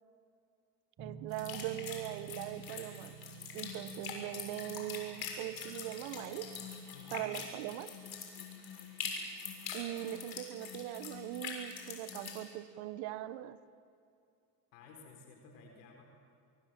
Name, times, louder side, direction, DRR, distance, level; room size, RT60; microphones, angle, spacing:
sound 1, 1.0-6.6, right 10 dB, 45° right, 4.2 m, -52 dB
voice 1, 1.0-3.1 3.5-6.5 7.1-7.9 9.7-13.6, right 14 dB, 75° right, 14 dB, 1.4 m, -41 dB
sound 2, 1.3-12.4, left 5 dB, 50° left, 6.7 m, -44 dB
voice 2, 14.7-16.0, left 3 dB, 90° left, 2 dB, 4.5 m, -55 dB
26.5 x 23.0 x 7.8 m, 2.5 s
supercardioid pair, 75°, 47 cm